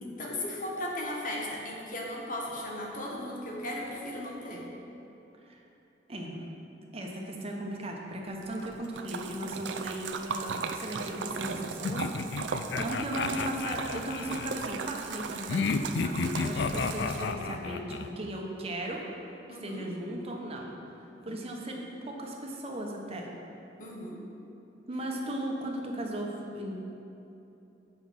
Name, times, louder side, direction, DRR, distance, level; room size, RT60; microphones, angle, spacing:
voice 1, 0.0-4.7 19.5-19.9 23.8-24.2, left 1 dB, 50° left, -2 dB, 1.4 m, -36 dB
voice 2, 6.1-6.4 6.9-19.0 19.6-20.7 21.2-23.3 24.9-26.7, right 1 dB, 35° right, 0 dB, 1.0 m, -37 dB
Splash splatter, 8.4-17.5, right 5 dB, 90° right, 0.5 m, -37 dB
sound 1, 11.8-14.5 15.5-18.1, left 4 dB, 75° left, 0.4 m, -32 dB
8.2 x 5.4 x 5.9 m, 2.9 s
head